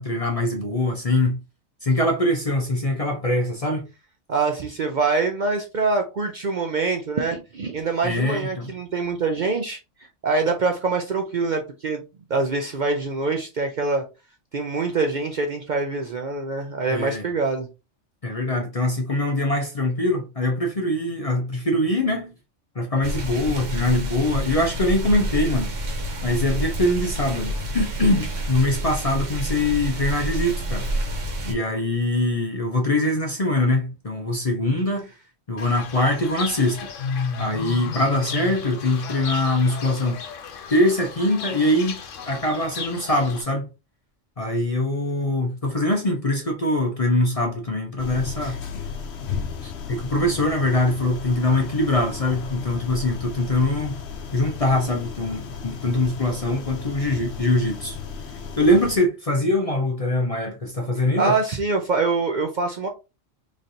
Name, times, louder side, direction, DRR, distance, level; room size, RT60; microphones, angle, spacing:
voice 1, 0.0-1.4 1.8-3.8 8.0-8.7 16.9-17.2 18.2-22.3 22.8-25.7 26.2-30.9 31.4-35.1 35.5-36.9 37.4-40.2 40.7-42.0 42.3-43.7 44.4-48.6 49.6-54.0 54.3-58.0 58.6-61.4, left 1 dB, 40° left, 0.6 m, -23 dB
voice 2, 4.3-9.8 10.2-12.0 12.3-14.0 14.5-17.7 48.4-48.6 61.2-62.9, right 3 dB, 55° right, 0.6 m, -24 dB
sound 1, 23.0-31.5, right 1 dB, 85° right, 1.3 m, -28 dB
Fowl / Bird, 35.6-43.4, left 5 dB, 85° left, 1.1 m, -33 dB
sound 2, 48.0-59.0, left 6 dB, 65° left, 0.9 m, -34 dB
3.9 x 3.2 x 2.7 m
omnidirectional pair, 1.2 m